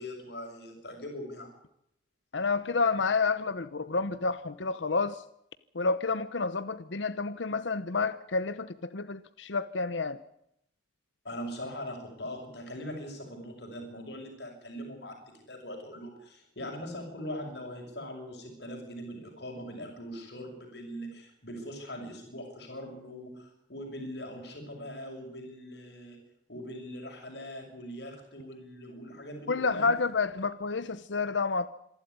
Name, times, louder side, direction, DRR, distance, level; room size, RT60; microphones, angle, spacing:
voice 1, 0.0-1.5 11.2-26.2 26.5-29.9, equal, 60° left, 6.5 m, -41 dB
voice 2, 2.3-5.2 5.7-10.2 29.5-31.7, left 4 dB, 80° left, 1.0 m, -29 dB
27.0 x 12.0 x 9.7 m
head